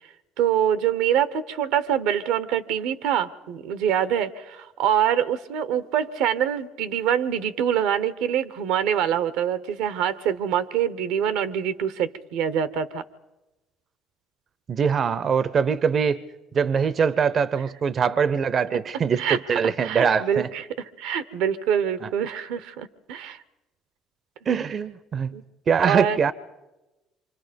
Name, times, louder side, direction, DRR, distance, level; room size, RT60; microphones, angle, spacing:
voice 1, 0.4-13.0 19.1-19.4 19.8-20.6 21.0-23.4 25.3-25.4 25.8-26.2, right 9 dB, 80° right, 15 dB, 0.9 m, -25 dB
voice 2, 14.7-16.2 16.5-20.5 22.0-22.1 24.5-25.3 25.7-26.3, right 6 dB, 50° right, 17 dB, 0.7 m, -23 dB
25.5 x 25.0 x 5.2 m, 1.1 s
hypercardioid pair, 60°, 0 cm